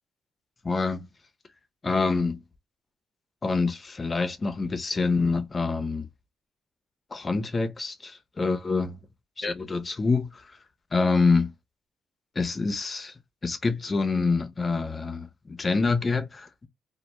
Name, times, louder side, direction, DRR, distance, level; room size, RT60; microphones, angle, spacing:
voice 1, 0.6-1.1 1.8-2.4 3.4-6.1 7.1-9.0 9.4-10.6 10.9-11.5 12.4-13.1 13.4-16.7, left 4 dB, 30° left, 0.5 m, -26 dB
2.1 x 2.1 x 2.9 m
cardioid pair, 90°, 0 cm